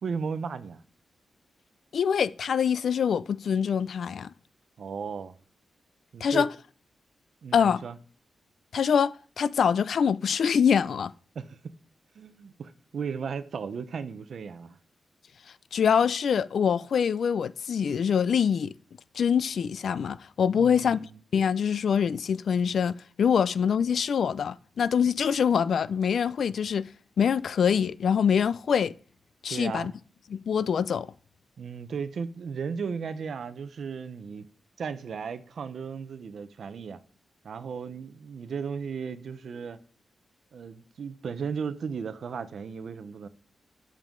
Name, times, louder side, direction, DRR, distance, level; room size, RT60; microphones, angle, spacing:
voice 1, 0.0-0.8 4.8-5.4 6.1-6.5 7.4-8.0 11.3-11.6 12.1-14.8 20.5-21.2 29.5-29.9 31.6-34.5 34.8-37.0 37.4-39.8 40.5-43.3, right 6 dB, 60° right, 0.7 m, -35 dB
voice 2, 1.9-4.3 6.2-6.5 7.5-7.8 8.7-11.1 15.7-18.7 19.2-21.0 21.3-26.9 27.2-28.9 29.4-29.9 30.3-31.1, left 7 dB, 60° left, 0.3 m, -24 dB
12.5 x 7.5 x 3.8 m
wide cardioid pair, 180°, 0 cm